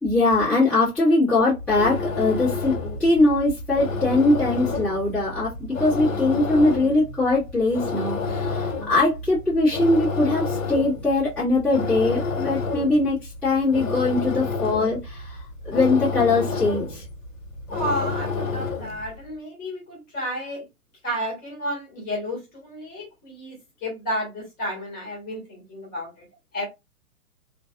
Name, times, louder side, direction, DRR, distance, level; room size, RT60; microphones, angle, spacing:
voice 1, 0.0-17.0, left 2 dB, 5° left, 1.3 m, -21 dB
sound 1, 1.5-19.1, left 4 dB, 60° left, 1.3 m, -30 dB
voice 2, 17.7-20.6 21.0-26.2 26.5-26.6, equal, 20° left, 1.5 m, -31 dB
3.2 x 2.5 x 2.3 m
figure-of-eight pair, 120°, 44 cm